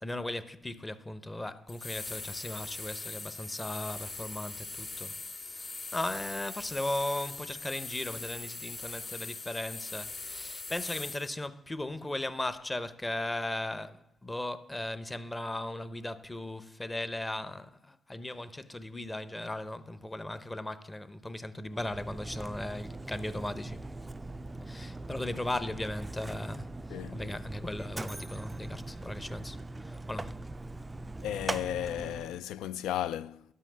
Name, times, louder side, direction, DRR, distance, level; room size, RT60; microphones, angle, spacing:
voice 1, 0.0-23.8 24.6-29.6 29.8-30.4, left 1 dB, 15° left, 0.7 m, -37 dB
sound 1, 1.7-11.3, left 3 dB, 30° left, 2.1 m, -41 dB
Mechanisms, 21.7-32.4, right 2 dB, 15° right, 0.3 m, -41 dB
voice 2, 26.9-27.2 31.2-33.4, left 11 dB, 85° left, 0.3 m, -34 dB
11.5 x 5.7 x 6.3 m
cardioid pair, 90°, 0 cm